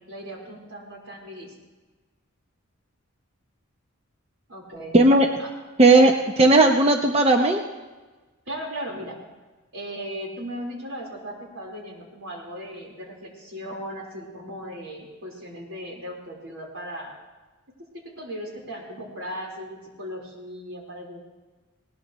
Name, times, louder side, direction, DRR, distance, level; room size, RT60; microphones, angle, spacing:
voice 1, 0.0-1.5 4.5-4.9 5.4-5.5 8.5-9.2 9.7-17.2 18.2-21.2, equal, 75° right, -1 dB, 4.2 m, -37 dB
voice 2, 4.9-5.3 5.8-7.6, right 2 dB, 30° right, 3 dB, 0.8 m, -16 dB
20.0 x 19.0 x 3.1 m, 1.2 s
head